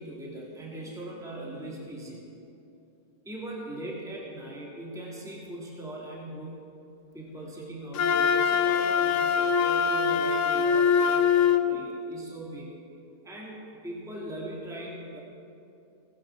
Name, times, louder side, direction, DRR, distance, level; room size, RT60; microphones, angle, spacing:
voice 1, 0.0-2.3 3.2-6.6 7.1-12.7 13.2-15.2, right 1 dB, ahead, -4 dB, 2.0 m, -40 dB
Wind instrument woodwind instrument, 7.9-11.7, left 7 dB, 60° left, 1.0 m, -23 dB
17.0 x 11.5 x 4.3 m, 2.8 s
omnidirectional pair, 1.7 m